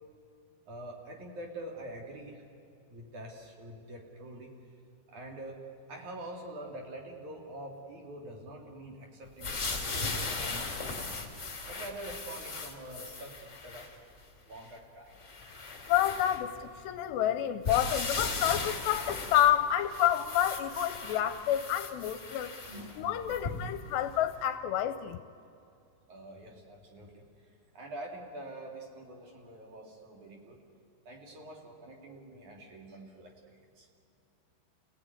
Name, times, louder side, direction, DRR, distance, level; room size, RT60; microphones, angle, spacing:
voice 1, 0.7-2.4 2.9-4.5 5.1-5.6 5.9-11.2 11.7-13.9 14.5-15.2 22.7-23.1 26.1-27.3 27.7-30.6 31.0-33.3 33.8-33.9, right 1 dB, 50° right, 1 dB, 3.3 m, -45 dB
sound 1, 9.4-13.9 14.6-14.7 15.2-16.8 17.6-23.8 24.4-24.5, left 3 dB, 30° left, 1.3 m, -37 dB
voice 2, 15.9-22.6 23.0-25.2, left 11 dB, 80° left, 10 dB, 2.6 m, -29 dB
28.5 x 17.5 x 9.4 m, 2.6 s
omnidirectional pair, 5.2 m